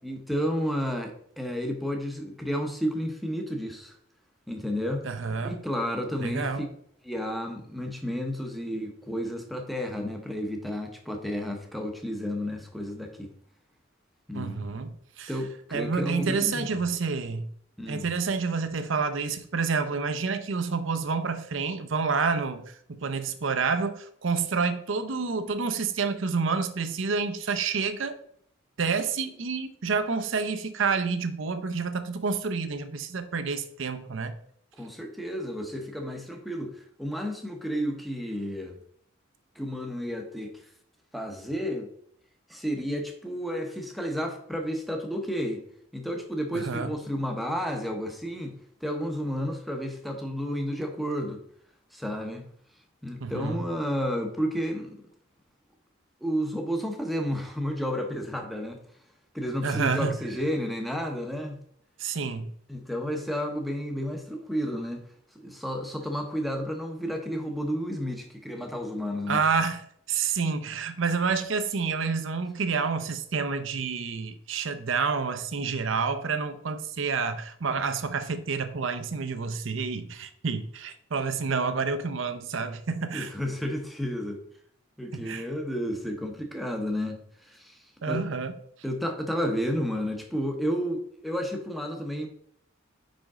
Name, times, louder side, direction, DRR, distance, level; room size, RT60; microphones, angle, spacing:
voice 1, 0.0-3.9 4.5-5.1 5.4-6.5 7.0-13.3 14.3-14.6 15.3-16.8 17.8-18.1 34.7-38.8 39.6-40.5 41.1-41.9 42.5-45.6 45.9-48.6 48.8-51.4 51.9-52.4 53.0-54.9 56.2-58.8 59.3-61.6 62.7-65.0 65.3-69.4 83.1-84.4 85.0-87.8 88.1-88.2 88.8-92.3, equal, ahead, 3 dB, 0.9 m, -31 dB
voice 2, 5.0-5.5 6.2-6.7 14.3-15.3 15.7-17.5 17.9-28.2 28.8-34.3 46.5-46.9 53.2-53.6 59.6-60.2 62.0-62.5 69.3-83.3 85.1-85.4 88.0-88.5, right 5 dB, 65° right, 9 dB, 0.6 m, -29 dB
5.1 x 5.1 x 3.6 m, 0.66 s
head